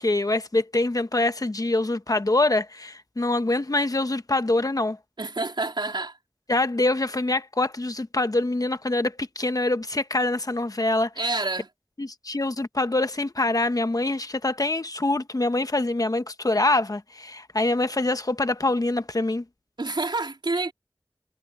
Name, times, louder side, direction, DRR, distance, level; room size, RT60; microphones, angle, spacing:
voice 1, 0.0-5.0 6.5-11.2 12.0-19.4, left 2 dB, 50° left, 1.1 m, -25 dB
voice 2, 5.2-6.2 11.2-11.7 19.8-20.7, right 3 dB, 85° right, 3.8 m, -28 dB
wide cardioid pair, 50°, 8 cm